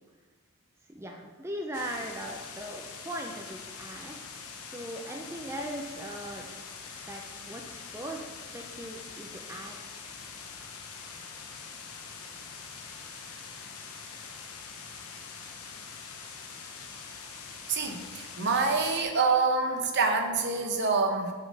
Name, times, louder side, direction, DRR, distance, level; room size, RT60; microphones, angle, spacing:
voice 1, 0.9-4.2 4.6-6.6 7.1-8.2 8.5-9.8 11.2-11.3, right 1 dB, 10° right, 1 dB, 0.4 m, -39 dB
sound 1, 1.7-19.0, left 5 dB, 85° left, 0.9 m, -44 dB
voice 2, 17.7-21.3, right 4 dB, 50° right, 4 dB, 0.9 m, -26 dB
7.4 x 4.1 x 6.2 m, 1.5 s
head